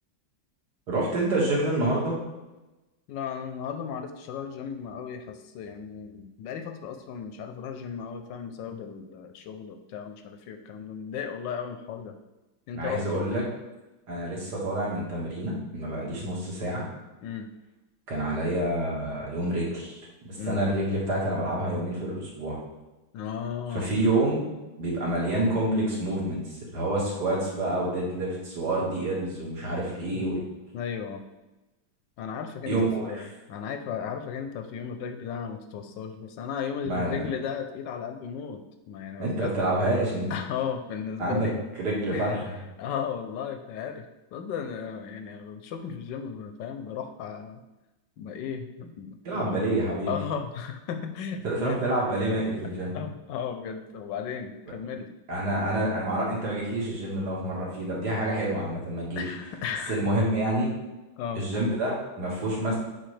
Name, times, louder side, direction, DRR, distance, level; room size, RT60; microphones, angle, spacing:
voice 1, 0.9-2.2 12.7-13.4 14.1-16.9 18.1-20.0 20.3-22.6 23.7-24.5 24.8-26.4 26.7-30.4 32.7-33.3 36.8-37.2 39.2-40.3 41.2-41.5 41.8-42.5 49.2-50.1 51.4-52.9 55.3-59.3 59.9-60.7 61.3-62.8, right 1 dB, 55° right, -4 dB, 2.3 m, -28 dB
voice 2, 3.1-12.2 12.7-13.4 17.2-17.5 20.4-20.7 23.1-23.9 30.1-30.3 30.7-31.2 32.2-39.5 40.3-41.6 42.1-42.4 42.8-47.6 48.2-49.7 50.1-51.8 52.5-52.6 52.9-55.1 59.2-60.1 61.2-61.4, left 7 dB, 75° left, 6 dB, 1.2 m, -35 dB
7.6 x 4.6 x 3.3 m, 1.1 s
omnidirectional pair, 2.2 m